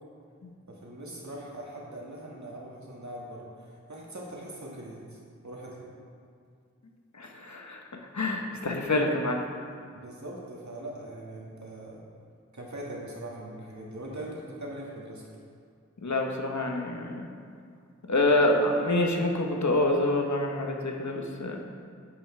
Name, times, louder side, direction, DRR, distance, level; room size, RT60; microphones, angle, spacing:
voice 1, 0.7-5.9 9.9-12.0 12.5-15.2, right 1 dB, 70° right, -3 dB, 1.7 m, -41 dB
voice 2, 7.2-7.8 8.1-9.5 16.0-17.3 18.1-21.6, left 2 dB, 70° left, 2 dB, 1.0 m, -26 dB
9.2 x 8.5 x 3.2 m, 2.2 s
wide cardioid pair, 55°, 30 cm